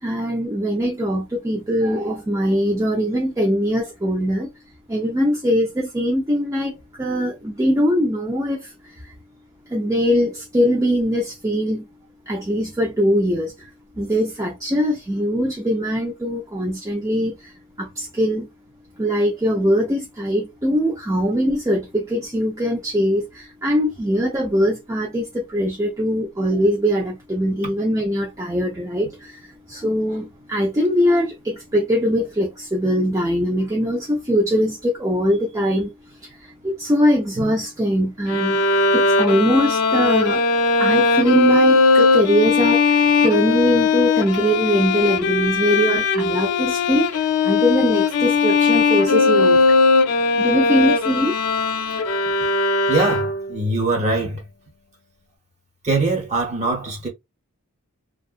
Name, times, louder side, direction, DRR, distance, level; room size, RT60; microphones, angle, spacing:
voice 1, 0.0-4.5 4.9-8.7 9.7-11.9 12.3-13.5 14.0-17.5 17.8-18.5 19.0-35.9 36.2-36.3 36.6-38.6 38.9-40.4 40.8-49.8 50.3-51.3, equal, 15° right, 0.4 m, -21 dB
Bowed string instrument, 38.3-53.6, left 4 dB, 70° left, 0.5 m, -19 dB
voice 2, 52.9-54.4 55.8-57.1, right 3 dB, 30° right, 1.2 m, -22 dB
2.6 x 2.3 x 2.4 m
head